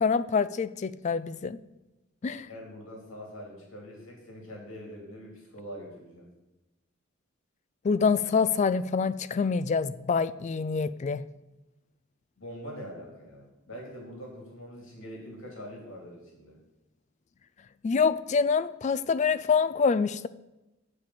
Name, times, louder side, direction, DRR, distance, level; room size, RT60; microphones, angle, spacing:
voice 1, 0.0-1.6 2.2-2.5 7.8-11.2 17.8-20.3, left 5 dB, 35° left, 15 dB, 0.3 m, -26 dB
voice 2, 2.5-6.3 12.4-16.6, equal, 75° left, -1 dB, 2.7 m, -43 dB
8.5 x 4.9 x 7.7 m, 0.99 s
head